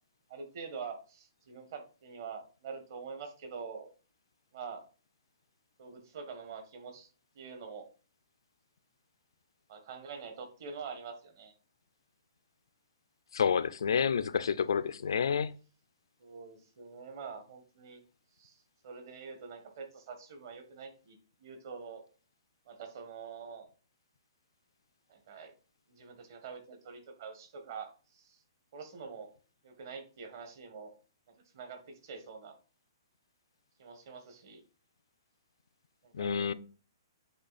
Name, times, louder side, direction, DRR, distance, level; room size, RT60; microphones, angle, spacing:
voice 1, 0.3-3.9 4.5-4.8 5.8-7.1 7.3-7.9 9.7-11.5 16.2-18.0 18.4-18.6 18.8-22.0 22.7-23.7 25.1-25.5 25.9-28.4 28.7-29.3 29.6-30.9 31.5-32.6 33.8-34.6 36.0-36.5, right 5 dB, 45° right, 1.5 m, -45 dB
voice 2, 13.3-15.5 36.1-36.5, left 7 dB, 85° left, 0.5 m, -29 dB
7.9 x 3.3 x 4.1 m
hypercardioid pair, 170°, 2 cm